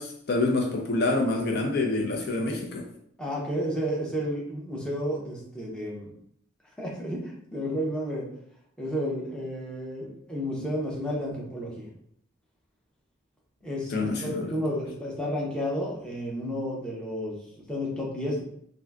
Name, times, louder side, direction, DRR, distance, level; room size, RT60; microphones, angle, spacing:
voice 1, 0.0-2.8 13.9-14.5, left 2 dB, 55° left, 2 dB, 0.4 m, -27 dB
voice 2, 3.2-6.1 6.8-8.3 8.8-11.9 13.6-18.4, equal, 5° left, -3 dB, 0.6 m, -31 dB
3.5 x 2.5 x 2.2 m, 0.69 s
head